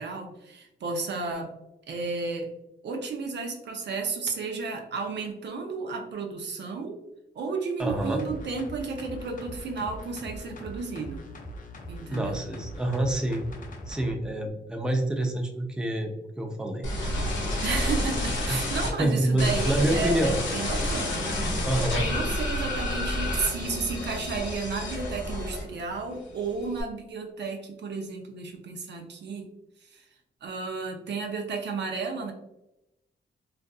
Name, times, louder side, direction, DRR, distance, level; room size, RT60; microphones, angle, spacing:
voice 1, 0.0-1.5 1.9-2.5 2.8-7.0 7.3-11.3 11.9-12.4 17.6-29.5 29.8-30.1 30.4-32.3, right 4 dB, 70° right, 3 dB, 0.5 m, -33 dB
sound 1, 7.8-14.1 14.5-14.6, equal, 45° left, 0.5 m, -42 dB
voice 2, 7.8-8.3 12.1-13.4 13.9-16.9 18.5-18.6 19.0-20.4 21.6-22.1, right 1 dB, 5° right, 3 dB, 0.4 m, -27 dB
sound 2, 16.8-18.9 19.4-25.9 26.2-26.8, left 1 dB, 90° left, 0.7 m, -29 dB
2.5 x 2.4 x 2.3 m, 0.89 s
cardioid pair, 70°, 19 cm